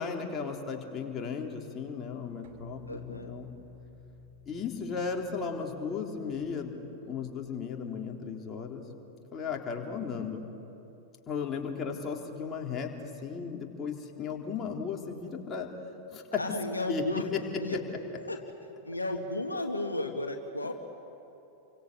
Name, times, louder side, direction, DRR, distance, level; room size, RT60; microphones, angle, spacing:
voice 1, 0.0-3.5 4.5-6.7 7.0-8.8 9.3-10.5 11.3-15.7 16.1-16.4 16.9-17.0 17.3-17.4, left 6 dB, 25° left, 1 dB, 3.8 m, -35 dB
sound 1, 2.4-7.7, left 2 dB, 55° right, 2.6 m, -53 dB
voice 2, 2.9-3.4 16.4-17.8 18.1-18.4 18.9-20.7, left 1 dB, 80° left, 4 dB, 1.7 m, -34 dB
29.5 x 24.5 x 8.2 m, 2.9 s
figure-of-eight pair, 90°, 0 cm